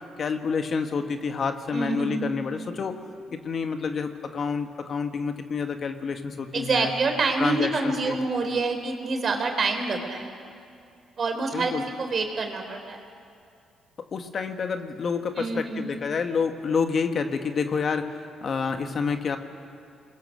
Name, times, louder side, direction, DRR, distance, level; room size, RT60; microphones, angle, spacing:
voice 1, 0.2-3.0 3.3-6.9 7.4-8.2 11.5-11.8 14.1-19.4, left 5 dB, 50° left, 6 dB, 1.6 m, -28 dB
voice 2, 1.7-2.4 6.5-10.3 11.2-11.7 12.0-13.0 15.4-15.9, right 3 dB, 45° right, 4 dB, 3.7 m, -27 dB
29.0 x 21.5 x 6.7 m, 2.4 s
cardioid pair, 90°, 0 cm